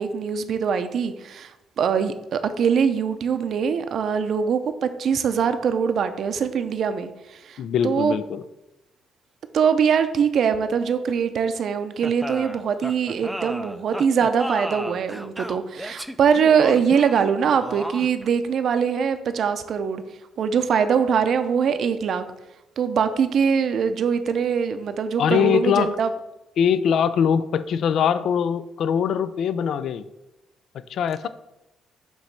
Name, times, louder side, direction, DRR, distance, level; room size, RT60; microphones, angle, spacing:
voice 1, 0.0-1.5 1.8-8.2 9.5-20.0 20.4-22.2 22.8-26.1, right 6 dB, 65° right, 9 dB, 0.6 m, -22 dB
voice 2, 7.6-8.4 25.2-26.0 26.6-30.1 30.9-31.3, left 8 dB, 70° left, 15 dB, 0.3 m, -22 dB
sound 1, 12.0-18.3, equal, 5° right, 0.4 m, -34 dB
7.2 x 3.1 x 5.3 m, 0.94 s
cardioid pair, 90°, 0 cm